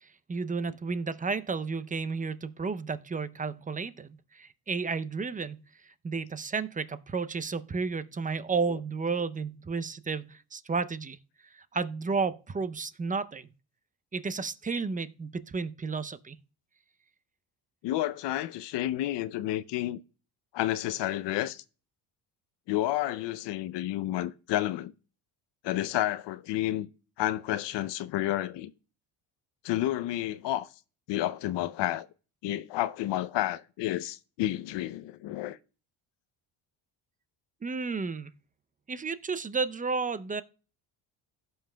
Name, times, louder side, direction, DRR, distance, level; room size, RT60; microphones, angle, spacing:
voice 1, 0.0-5.6 6.0-11.2 11.5-13.5 14.1-16.4 37.6-38.3 38.9-40.4, right 4 dB, 20° right, 0.5 m, -32 dB
voice 2, 17.8-20.0 20.5-21.6 22.7-24.9 25.6-26.9 27.2-28.7 29.6-30.7 31.1-32.1 32.4-35.6, left 14 dB, 65° left, 0.6 m, -30 dB
16.5 x 5.6 x 2.2 m
supercardioid pair, 80°, 46 cm